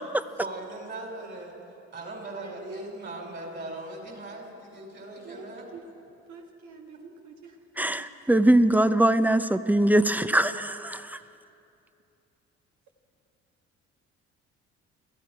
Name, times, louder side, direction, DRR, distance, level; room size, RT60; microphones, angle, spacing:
voice 1, 0.4-1.6 1.9-5.7, right 2 dB, 40° right, 1 dB, 4.6 m, -39 dB
voice 2, 2.4-2.9 5.2-5.8 6.3-8.3, right 4 dB, 70° right, 2 dB, 1.4 m, -47 dB
voice 3, 7.8-11.2, right 1 dB, 5° right, 13 dB, 0.6 m, -22 dB
21.5 x 14.0 x 4.7 m, 2.7 s
supercardioid pair, 75°, 30 cm